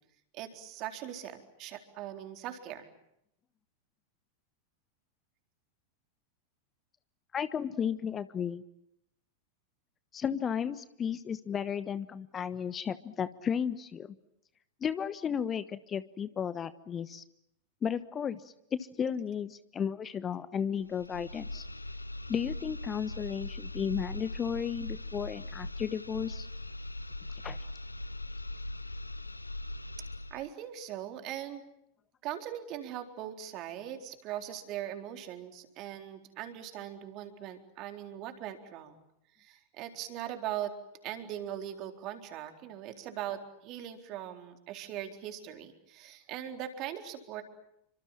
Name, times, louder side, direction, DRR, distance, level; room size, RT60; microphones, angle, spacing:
voice 1, 0.3-2.9 30.3-31.6 32.2-39.0 39.4-40.7 41.0-47.4, right 11 dB, 40° right, 6 dB, 4.0 m, -40 dB
voice 2, 7.3-8.6 10.1-14.1 14.8-17.2 17.8-21.6 22.3-26.5 27.4-27.6, left 7 dB, 25° left, 15 dB, 1.1 m, -34 dB
sound 1, 20.8-30.5, left 1 dB, 85° left, 1.0 m, -40 dB
29.5 x 25.5 x 7.4 m, 0.79 s
figure-of-eight pair, 90°, 0 cm